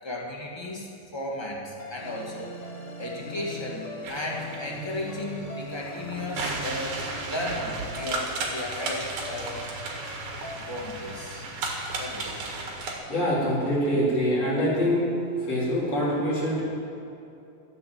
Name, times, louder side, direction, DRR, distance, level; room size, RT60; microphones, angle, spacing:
voice 1, 0.0-2.6 3.0-7.0 7.2-9.7 10.6-11.5 12.0-12.5, left 1 dB, 10° left, -2 dB, 1.4 m, -35 dB
sound 1, 1.8-12.1, left 1 dB, 40° left, 1.0 m, -41 dB
sound 2, 4.0-12.9, right 3 dB, 80° right, 3.3 m, -34 dB
voice 2, 13.1-15.0 15.4-16.6, equal, 60° left, -7 dB, 5.0 m, -24 dB
13.5 x 9.6 x 7.6 m, 2.7 s
omnidirectional pair, 3.4 m